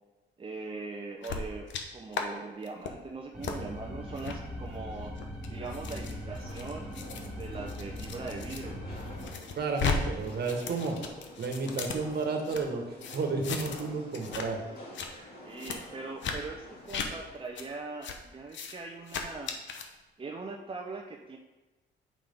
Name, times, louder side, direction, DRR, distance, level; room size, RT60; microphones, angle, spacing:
voice 1, 0.4-5.2 5.5-6.9 7.3-8.8 15.4-19.5 20.2-21.4, right 3 dB, 25° right, 1 dB, 0.8 m, -41 dB
sound 1, 1.2-1.8 2.1-2.3 2.6-2.9 3.4-3.6 4.2-4.4 5.0-8.6 9.0-10.0 10.2-12.6 13.0-13.9 14.1-14.5 14.8-15.1 15.6-15.8 16.2-16.4 16.9-17.1 17.6-17.7 18.0-18.2 18.5-18.7 19.1-19.9, left 6 dB, 70° left, 0.9 m, -36 dB
sound 2, 3.3-9.3, left 1 dB, 5° right, 1.8 m, -40 dB
sound 3, 6.1-17.2, left 1 dB, 50° left, 2.5 m, -48 dB
voice 2, 9.6-11.0 11.4-12.8 13.1-14.6, right 4 dB, 55° right, 2 dB, 1.5 m, -31 dB
8.5 x 5.4 x 3.7 m, 1.1 s
cardioid pair, 90°, 20 cm